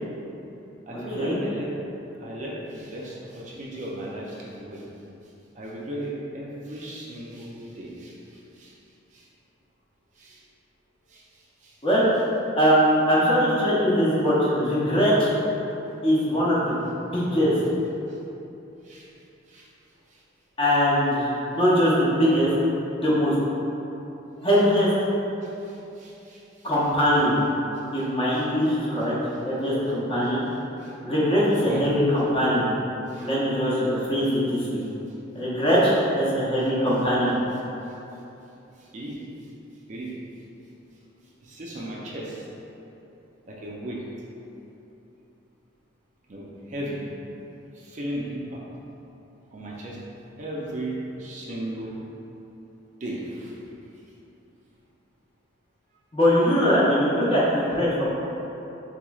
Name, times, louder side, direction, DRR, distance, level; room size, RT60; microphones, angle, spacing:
voice 1, 0.9-1.7 2.2-4.8 5.6-8.1 8.6-8.7 9.1-9.2 10.2-10.4 11.1-11.2 11.6-11.7 18.8-19.1 19.5-19.7 25.4-25.5 26.0-26.4 28.3-28.4 30.8-30.9 31.7-31.8 33.1-33.3 38.9-39.2 39.9-40.1 41.4-42.4 43.5-44.0 46.3-47.0 47.8-48.6 49.5-50.0 50.4-52.0 53.0-53.5, right 1 dB, 40° right, -4 dB, 0.4 m, -35 dB
voice 2, 12.6-15.3 16.0-16.7 17.1-17.5 20.6-22.5 23.0-23.3 24.4-24.9 26.6-27.4 27.9-29.1 29.4-30.4 31.0-32.7 33.2-34.8 35.3-37.4 56.1-58.1, equal, 30° left, -8 dB, 0.7 m, -21 dB
4.1 x 3.0 x 2.3 m, 3.0 s
head